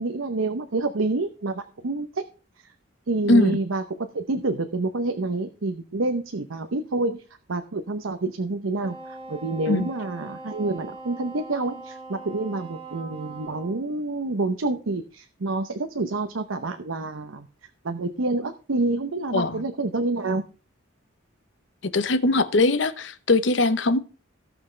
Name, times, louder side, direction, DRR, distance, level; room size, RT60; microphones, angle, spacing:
voice 1, 0.0-2.3 2.6-2.7 3.1-7.2 7.5-17.5 17.8-20.4, right 2 dB, 85° right, 0.8 m, -28 dB
Wind instrument woodwind instrument, 8.8-13.9, right 3 dB, 25° right, 1.6 m, -41 dB
voice 2, 19.3-19.6 21.8-24.0, left 2 dB, 65° left, 0.9 m, -21 dB
17.5 x 6.1 x 3.3 m
head